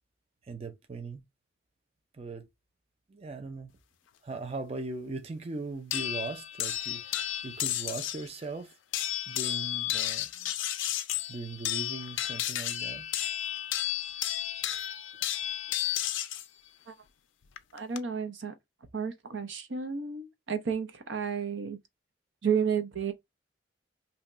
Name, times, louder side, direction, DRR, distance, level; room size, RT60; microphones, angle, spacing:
voice 1, 0.4-1.2 2.1-2.5 3.1-3.7 4.2-8.8 9.3-10.5 11.3-13.1, right 3 dB, 30° right, 0.5 m, -39 dB
sound 1, 5.9-8.3 8.9-16.5 17.6-18.0, left 13 dB, 80° left, 0.4 m, -32 dB
voice 2, 17.7-18.5 18.9-21.8 22.4-23.1, right 6 dB, 75° right, 0.7 m, -31 dB
2.7 x 2.2 x 3.9 m
head